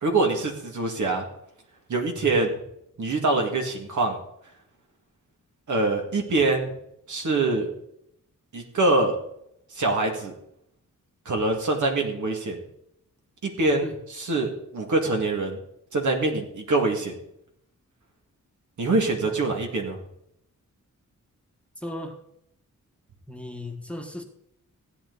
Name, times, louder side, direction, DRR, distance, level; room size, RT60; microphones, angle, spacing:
voice 1, 0.0-1.3 1.9-2.5 3.0-4.2 5.7-6.7 7.1-7.7 8.5-9.2 9.7-10.3 11.3-12.6 13.4-15.6 15.9-17.2 18.8-20.0, right 2 dB, 65° right, 3 dB, 2.2 m, -24 dB
voice 2, 21.8-22.2 23.3-24.2, left 1 dB, 5° left, 4 dB, 1.4 m, -36 dB
15.5 x 9.1 x 4.1 m, 0.76 s
wide cardioid pair, 110°, 32 cm